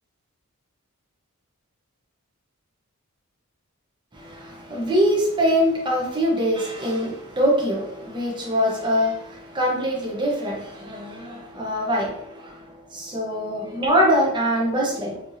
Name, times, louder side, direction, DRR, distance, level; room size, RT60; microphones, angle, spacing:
voice 1, 4.1-15.2, equal, 20° right, -3 dB, 0.9 m, -23 dB
4.4 x 2.9 x 2.6 m, 0.76 s
head